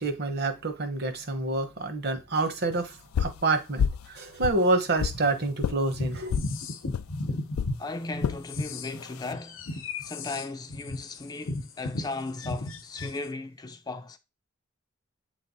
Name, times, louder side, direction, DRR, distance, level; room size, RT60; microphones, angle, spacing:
voice 1, 0.0-6.4, right 2 dB, 50° right, 1.0 m, -28 dB
sound 1, 3.1-3.4 3.8-4.1 4.4-5.2 5.6-5.8 6.3-6.5 6.9-7.1 7.5-7.7 8.2-8.4 9.0-9.3, left 7 dB, 90° left, 0.3 m, -28 dB
sound 2, 5.9-7.8 8.1-13.3, left 2 dB, 70° left, 0.8 m, -34 dB
voice 2, 7.8-14.2, left 3 dB, 20° left, 0.4 m, -37 dB
8.3 x 3.2 x 4.1 m
head